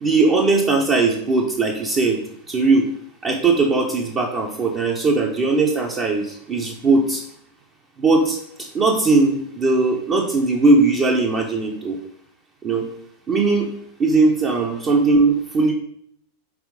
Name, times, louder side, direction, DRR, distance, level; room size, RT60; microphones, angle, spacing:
voice 1, 0.0-2.2 2.5-2.9 3.2-7.2 8.0-8.4 8.7-12.0 12.6-12.9 13.3-13.7 14.0-15.7, right 3 dB, 30° right, -1 dB, 1.0 m, -19 dB
6.0 x 4.7 x 5.2 m, 0.68 s
figure-of-eight pair, 90°, 0 cm